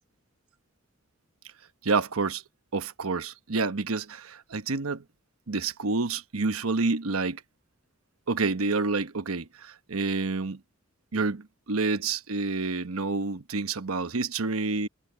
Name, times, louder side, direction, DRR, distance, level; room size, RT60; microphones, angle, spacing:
voice 1, 1.8-2.4 2.7-5.0 5.5-7.4 8.3-10.6 11.1-14.9, right 3 dB, 85° right, 1.1 m, -28 dB
head